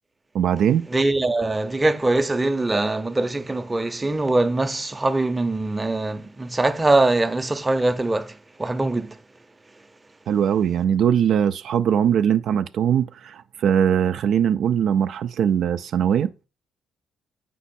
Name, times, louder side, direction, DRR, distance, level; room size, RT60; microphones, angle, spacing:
voice 1, 0.3-0.9 10.3-16.3, right 9 dB, 70° right, 0.4 m, -21 dB
voice 2, 0.9-9.1, right 2 dB, 20° right, 0.7 m, -22 dB
8.1 x 5.4 x 4.2 m
cardioid pair, 90°, 0 cm